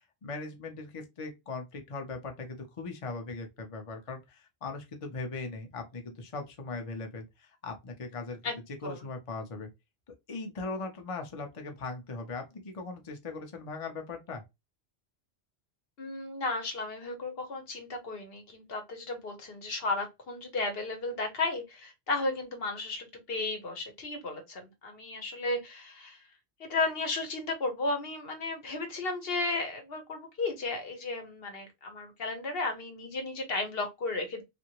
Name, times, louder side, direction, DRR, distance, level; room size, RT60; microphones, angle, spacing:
voice 1, 0.0-8.4 8.8-9.7 10.3-14.4, left 3 dB, 35° left, 0.7 m, -39 dB
voice 2, 16.0-26.2 26.6-34.4, left 3 dB, 65° left, 1.0 m, -34 dB
2.7 x 2.5 x 2.8 m
omnidirectional pair, 1.1 m